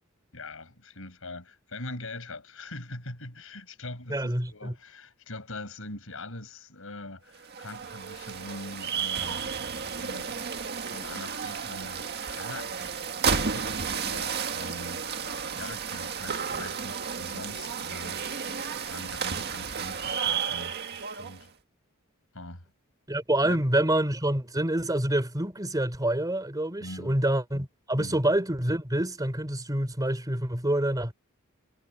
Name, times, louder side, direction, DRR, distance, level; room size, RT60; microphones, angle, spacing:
voice 1, 0.3-9.6 9.9-13.0 13.3-15.0 15.6-18.2 18.7-21.5 22.3-22.7 23.4-23.7 26.8-27.2 27.9-28.2, left 2 dB, 70° left, 7.8 m, -42 dB
voice 2, 4.1-4.7 23.1-31.1, right 1 dB, 15° right, 3.3 m, -27 dB
sound 1, 7.4-21.4, right 6 dB, 50° right, 1.8 m, -32 dB
head